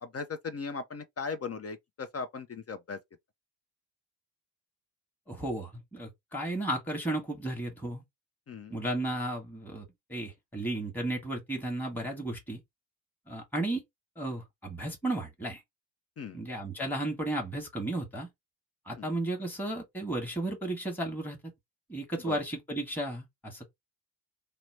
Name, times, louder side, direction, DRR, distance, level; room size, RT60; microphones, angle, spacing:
voice 1, 0.0-3.0 8.5-8.8 16.2-16.4 19.0-19.2 22.2-22.4, left 5 dB, 35° left, 0.5 m, -38 dB
voice 2, 5.3-8.0 8.7-12.6 13.3-13.8 14.2-15.6 16.3-18.3 18.9-21.4 21.9-23.7, right 1 dB, 5° left, 1.2 m, -34 dB
2.9 x 2.1 x 3.1 m
supercardioid pair, 55°, 46 cm